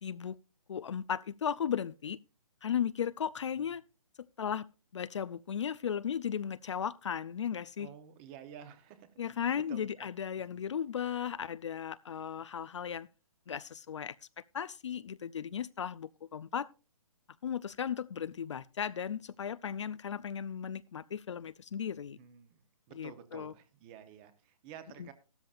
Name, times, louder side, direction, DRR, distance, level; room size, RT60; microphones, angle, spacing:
voice 1, 0.0-0.4 0.7-2.2 2.6-3.8 4.4-4.7 4.9-7.9 9.2-13.1 13.5-14.2 14.5-16.7 17.4-22.2 22.9-23.5 25.0-25.1, left 8 dB, 55° left, 0.5 m, -36 dB
voice 2, 7.8-9.1 9.5-10.1 10.5-10.7 22.1-22.6 22.9-25.1, right 9 dB, 15° right, 0.9 m, -51 dB
14.5 x 13.0 x 2.5 m
hypercardioid pair, 165°, 19 cm